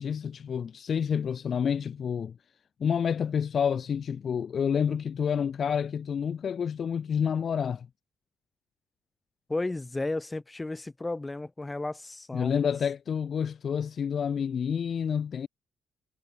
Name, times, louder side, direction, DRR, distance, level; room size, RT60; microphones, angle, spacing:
voice 1, 0.0-2.3 2.8-7.9 12.3-15.5, left 7 dB, 50° left, 1.3 m, -29 dB
voice 2, 9.5-12.6, left 2 dB, 15° left, 3.5 m, -33 dB
cardioid pair, 90°, 0 cm